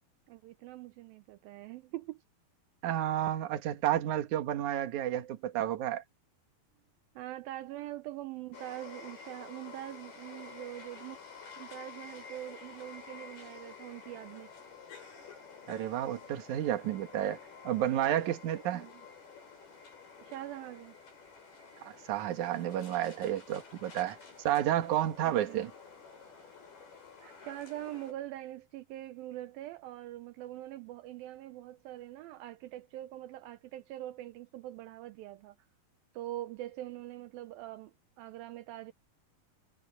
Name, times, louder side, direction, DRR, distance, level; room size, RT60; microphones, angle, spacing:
voice 1, 0.3-2.2 7.2-11.2 11.6-14.5 18.7-19.1 20.2-21.0 25.2-25.6 27.2-35.6 36.1-38.9, right 14 dB, 80° right, 2.5 m, -43 dB
voice 2, 2.8-6.0 15.7-17.4 17.6-18.9 21.8-24.2 24.4-25.7, right 12 dB, 60° right, 2.6 m, -31 dB
sound 1, 8.5-28.1, left 5 dB, 90° left, 10.0 m, -50 dB
omnidirectional pair, 4.3 m